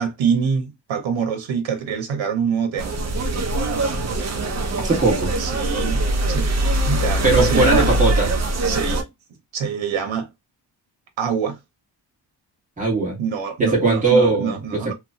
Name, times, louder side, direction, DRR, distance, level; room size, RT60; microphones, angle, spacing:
voice 1, 0.0-3.0 5.4-6.0 6.3-6.5 6.8-7.9 8.6-9.1 9.5-10.3 11.2-11.6 13.2-14.9, right 6 dB, 90° right, 0.8 m, -25 dB
sound 1, 2.8-9.0, right 1 dB, 35° right, 0.6 m, -22 dB
voice 2, 4.8-5.3 7.2-8.3 12.8-13.2 13.6-14.9, right 3 dB, 15° right, 1.6 m, -19 dB
2.9 x 2.3 x 2.6 m
wide cardioid pair, 125°, 45 cm